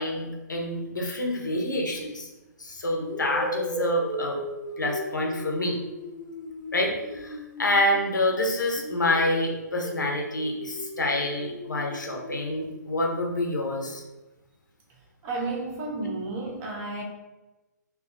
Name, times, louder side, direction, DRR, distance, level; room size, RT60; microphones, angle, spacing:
voice 1, 0.0-2.3 2.6-4.4 4.8-5.8 6.7-14.0, left 1 dB, 85° left, 1 dB, 0.6 m, -27 dB
sound 1, 1.9-2.2 3.0-8.3 8.7-12.7, equal, 30° left, 0.4 m, -37 dB
voice 2, 15.2-17.0, right 3 dB, 25° right, -1 dB, 0.5 m, -32 dB
2.7 x 2.2 x 2.5 m, 1.1 s
figure-of-eight pair, 135°, 10 cm